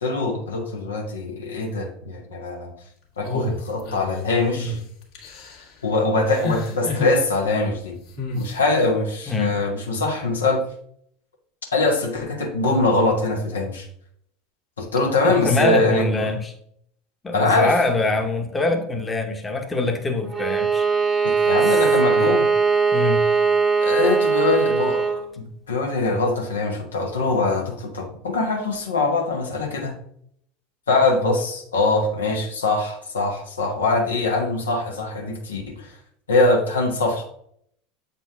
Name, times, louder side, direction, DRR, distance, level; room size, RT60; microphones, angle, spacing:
voice 1, 0.0-2.7 3.2-4.8 5.8-8.0 8.3-10.6 11.7-13.9 14.8-16.3 17.3-17.7 21.2-22.5 23.8-29.9 30.9-36.0 36.3-37.2, left 2 dB, 85° left, 1 dB, 1.3 m, -23 dB
sound 1, 3.2-4.2 4.5-4.8 5.2-5.6 6.3-7.2 8.2-8.5, left 2 dB, 65° left, 1.8 m, -29 dB
voice 2, 9.3-9.6 15.2-16.5 17.2-20.9 21.6-21.8 22.9-23.3, left 3 dB, 15° left, 3 dB, 1.0 m, -24 dB
Bowed string instrument, 20.3-25.2, right 5 dB, 20° right, 0.9 m, -20 dB
7.7 x 4.2 x 3.6 m, 0.68 s
hypercardioid pair, 80°, 0 cm